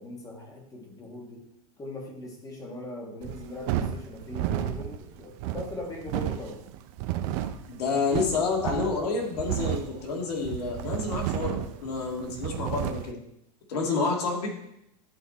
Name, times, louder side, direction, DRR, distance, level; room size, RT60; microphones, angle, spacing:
voice 1, 0.0-1.4 1.8-6.6 13.8-14.1, left 1 dB, 20° left, 1 dB, 1.8 m, -40 dB
sound 1, 3.2-13.1, right 11 dB, 55° right, 0.7 m, -32 dB
voice 2, 7.7-13.2 13.7-14.5, left 4 dB, 85° left, 0 dB, 2.1 m, -29 dB
11.0 x 4.1 x 4.2 m, 0.78 s
supercardioid pair, 130°, 19 cm